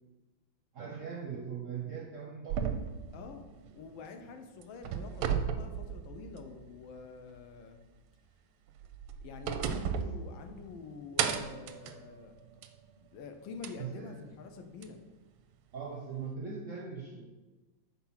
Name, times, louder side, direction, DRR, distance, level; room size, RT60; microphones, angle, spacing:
voice 1, 0.7-2.8 13.8-14.2 15.7-17.2, right 6 dB, 65° right, -1 dB, 0.8 m, -40 dB
sound 1, 2.5-4.3 4.6-6.6 7.0-7.1 8.7-10.8 11.2-12.8 13.6-13.7 14.8-14.9, right 8 dB, 85° right, 1.4 m, -35 dB
voice 2, 3.1-3.5 3.7-7.8 9.2-12.4 13.0-15.0, left 5 dB, 75° left, 6 dB, 1.5 m, -46 dB
5.9 x 4.3 x 5.7 m, 1.2 s
omnidirectional pair, 2.2 m